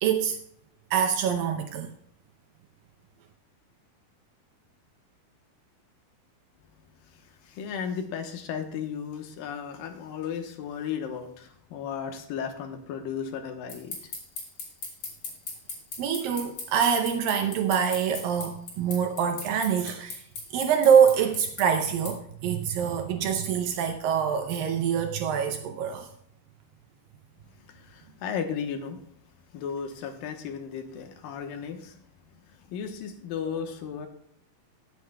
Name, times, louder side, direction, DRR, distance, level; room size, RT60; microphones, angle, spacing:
voice 1, 0.0-0.4 0.9-1.9 16.0-20.2 20.5-26.1, right 7 dB, 75° right, 2.4 m, -25 dB
voice 2, 7.1-14.0 27.7-29.0 29.5-32.0 32.7-34.1, left 7 dB, 75° left, 2.7 m, -35 dB
sound 1, 13.7-22.1, left 4 dB, 55° left, 4.1 m, -37 dB
16.0 x 8.3 x 2.3 m
omnidirectional pair, 4.2 m